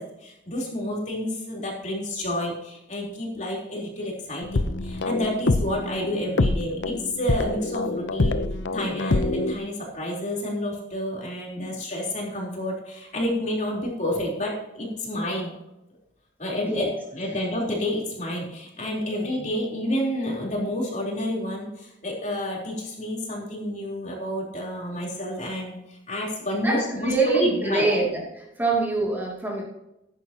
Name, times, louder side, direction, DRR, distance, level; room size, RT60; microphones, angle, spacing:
voice 1, 0.0-8.4 8.7-15.5 16.4-28.0, equal, 40° left, -3 dB, 3.8 m, -29 dB
sound 1, 4.4-9.5, left 2 dB, 75° left, 0.7 m, -26 dB
voice 2, 26.6-28.2 28.6-29.6, right 3 dB, 10° right, -4 dB, 2.6 m, -25 dB
15.0 x 11.0 x 3.0 m, 0.87 s
head